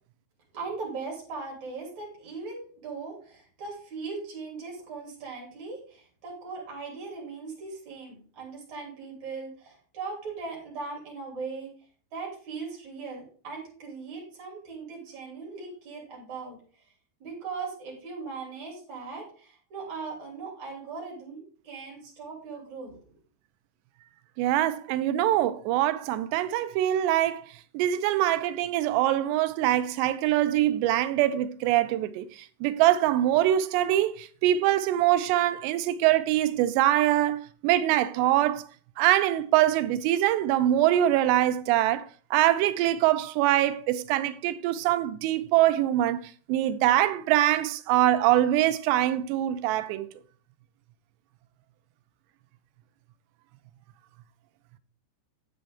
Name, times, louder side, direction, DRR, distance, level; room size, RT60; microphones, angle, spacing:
voice 1, 0.5-11.7 12.1-16.6 17.2-23.0, right 4 dB, 45° right, 4.1 m, -39 dB
voice 2, 24.4-27.5 27.7-38.7 39.0-50.1, right 13 dB, 90° right, 2.8 m, -24 dB
10.0 x 8.0 x 3.5 m
omnidirectional pair, 4.8 m